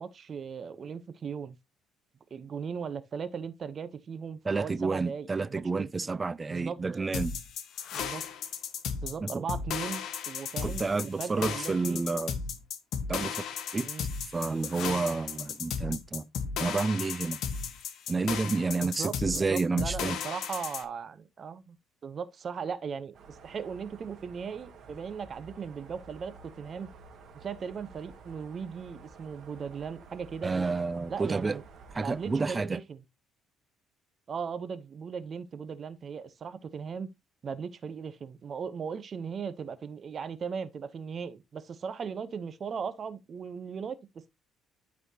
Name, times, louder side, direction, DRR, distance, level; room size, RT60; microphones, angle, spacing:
voice 1, 0.0-1.6 2.3-5.9 6.5-6.8 7.9-8.2 9.0-12.0 13.8-14.1 18.8-21.8 22.0-26.9 27.3-30.5 31.1-31.6 32.0-33.0 34.3-37.1 37.4-44.3, right 6 dB, 40° right, 0.7 m, -38 dB
voice 2, 4.5-7.3 9.2-9.4 10.6-12.4 13.1-13.4 13.7-13.9 14.3-16.3 16.6-17.4 18.1-20.2 30.4-31.6 31.9-32.8, right 4 dB, 20° right, 0.3 m, -30 dB
sound 1, 7.1-20.8, left 7 dB, 60° left, 1.0 m, -35 dB
sound 2, 23.1-32.5, right 4 dB, 55° right, 1.6 m, -52 dB
12.0 x 4.2 x 2.8 m
cardioid pair, 120°, 0 cm